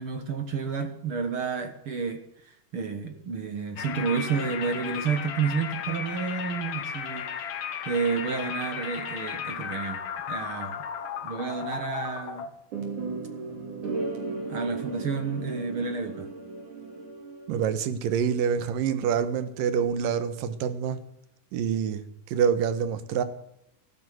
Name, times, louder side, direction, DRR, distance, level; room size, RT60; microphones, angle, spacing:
voice 1, 0.0-7.5 7.9-10.8 11.2-12.5 14.5-16.3, right 5 dB, 50° right, 8 dB, 2.0 m, -30 dB
sound 1, 3.8-12.5, left 8 dB, 75° left, 3.1 m, -35 dB
sound 2, 12.7-17.8, right 3 dB, 65° right, 4.5 m, -35 dB
voice 2, 17.5-21.0 21.5-23.2, right 7 dB, 85° right, 12 dB, 3.0 m, -26 dB
15.5 x 12.0 x 7.8 m, 0.77 s
omnidirectional pair, 3.8 m